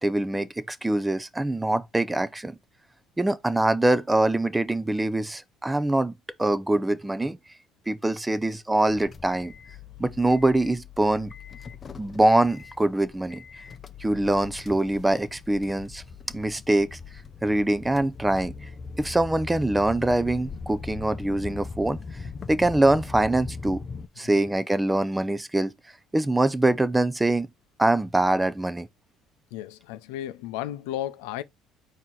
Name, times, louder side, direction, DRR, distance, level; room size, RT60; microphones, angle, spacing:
voice 1, 0.0-2.6 3.2-6.1 6.4-7.4 7.9-9.5 10.0-11.3 12.0-13.4 14.0-16.0 16.3-17.0 17.4-18.7 19.0-22.0 22.5-23.8 24.2-25.7 26.1-27.5 27.8-28.9, right 2 dB, 10° right, 0.5 m, -24 dB
sound 1, 8.9-24.1, left 4 dB, 35° left, 0.6 m, -40 dB
voice 2, 29.5-31.4, left 12 dB, 90° left, 0.5 m, -34 dB
4.3 x 2.8 x 3.8 m
supercardioid pair, 90°, 0 cm